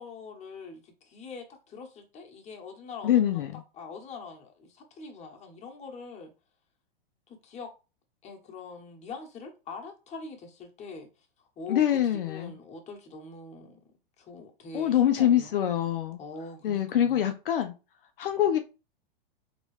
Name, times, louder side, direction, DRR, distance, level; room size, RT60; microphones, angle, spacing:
voice 1, 0.0-6.3 7.3-7.7 8.2-15.6 16.2-17.3, left 4 dB, 25° left, 1.1 m, -43 dB
voice 2, 3.0-3.6 11.7-12.5 14.7-16.2 16.6-17.7 18.2-18.6, left 11 dB, 70° left, 0.6 m, -24 dB
4.0 x 3.0 x 3.1 m
hypercardioid pair, 110°, 29 cm